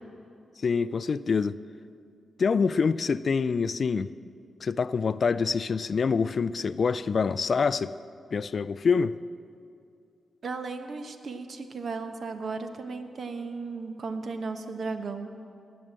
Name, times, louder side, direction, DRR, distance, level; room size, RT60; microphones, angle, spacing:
voice 1, 0.6-1.6 2.4-4.1 4.6-7.9 8.3-9.2, left 5 dB, 55° left, 0.3 m, -26 dB
voice 2, 10.4-15.3, right 4 dB, 60° right, 1.1 m, -35 dB
19.0 x 6.4 x 7.5 m
cardioid pair, 65°, 0 cm